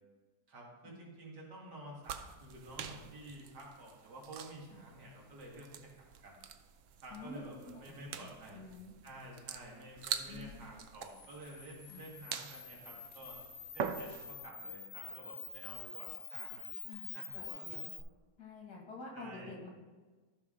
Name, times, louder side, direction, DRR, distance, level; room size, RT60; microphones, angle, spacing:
voice 1, 0.5-6.4 7.0-8.7 9.0-13.4 13.7-17.7 19.1-19.5, right 1 dB, 90° right, -2 dB, 2.5 m, -51 dB
sound 1, 2.0-14.5, right 7 dB, 65° right, 0.8 m, -45 dB
voice 2, 7.7-8.9 10.3-10.7 11.9-12.1 16.9-17.1 17.3-17.9 18.4-19.7, left 3 dB, 85° left, 0 dB, 2.3 m, -49 dB
Camera, 11.0-18.0, left 6 dB, 50° left, 1.1 m, -47 dB
13.0 x 5.8 x 3.7 m, 1.3 s
omnidirectional pair, 1.7 m